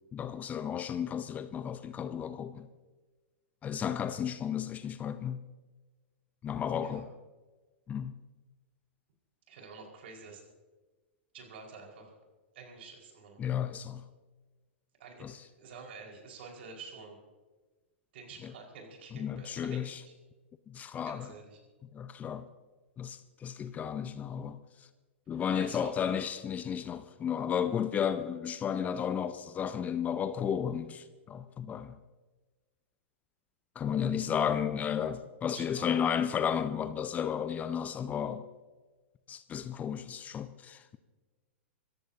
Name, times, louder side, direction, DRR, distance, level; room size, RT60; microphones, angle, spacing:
voice 1, 0.1-2.7 3.6-5.4 6.4-7.1 7.9-8.1 13.4-14.0 15.2-15.4 19.2-20.0 20.7-21.3 21.9-22.5 23.0-24.6 25.3-32.0 33.8-38.5 39.3-41.0, left 8 dB, 25° left, 0.7 m, -33 dB
voice 2, 9.5-10.4 11.3-12.2 12.5-13.4 15.0-17.2 18.1-20.1 21.0-21.6 25.3-26.3 35.5-35.9, right 4 dB, 60° right, 5.0 m, -49 dB
25.5 x 15.0 x 2.8 m
hypercardioid pair, 105°, 7 cm